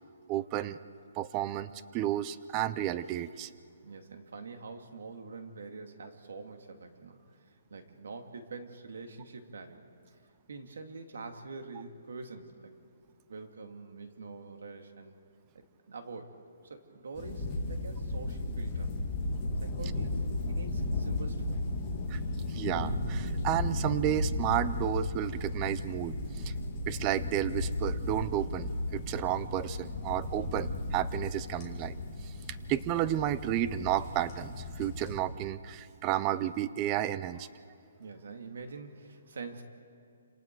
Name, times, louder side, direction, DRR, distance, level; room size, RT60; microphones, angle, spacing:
voice 1, 0.3-0.8 1.2-3.5 22.1-22.2 22.5-26.5 26.9-32.0 32.2-32.3 32.7-37.5, right 12 dB, 15° right, 16 dB, 0.5 m, -32 dB
voice 2, 3.8-9.9 10.5-12.7 13.3-15.1 15.5-16.3 16.6-18.9 19.6-21.6 38.0-39.6, right 4 dB, 65° right, 5 dB, 2.3 m, -45 dB
sound 1, 17.2-35.2, left 2 dB, 15° left, 2.4 m, -35 dB
27.5 x 26.5 x 4.7 m, 2.3 s
hypercardioid pair, 175°, 0 cm